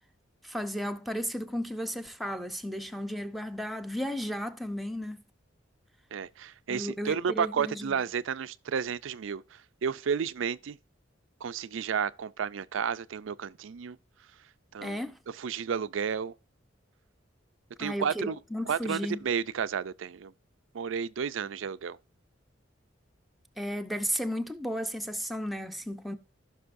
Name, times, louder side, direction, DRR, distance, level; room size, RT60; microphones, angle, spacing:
voice 1, 0.4-5.2 6.7-8.0 14.8-15.2 17.8-19.2 23.6-26.2, equal, ahead, 0.7 m, -34 dB
voice 2, 6.1-10.8 11.4-14.0 14.7-15.0 15.3-16.3 17.8-18.4 18.7-20.3 20.7-22.0, right 7 dB, 85° right, 0.4 m, -32 dB
15.5 x 6.0 x 2.6 m
head